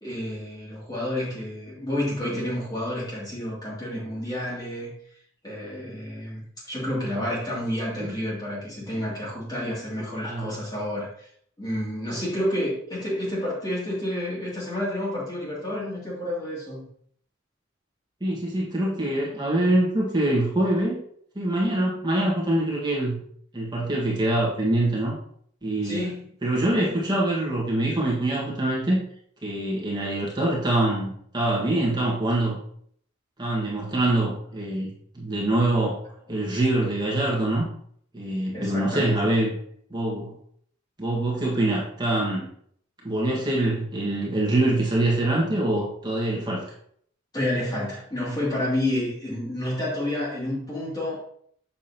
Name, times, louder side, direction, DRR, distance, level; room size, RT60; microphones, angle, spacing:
voice 1, 0.0-4.9 5.4-11.3 11.6-16.8 25.8-26.2 36.3-36.5 38.5-39.3 47.3-51.3, left 1 dB, 20° left, -6 dB, 2.8 m, -30 dB
voice 2, 10.2-10.5 18.2-21.0 21.3-23.2 23.5-25.2 25.6-26.0 26.4-29.0 29.4-32.6 33.4-36.0 36.3-37.7 38.1-39.5 39.9-40.3 41.0-42.5 43.0-46.6, right 1 dB, 20° right, -5 dB, 1.7 m, -24 dB
7.2 x 6.2 x 2.9 m, 0.64 s
head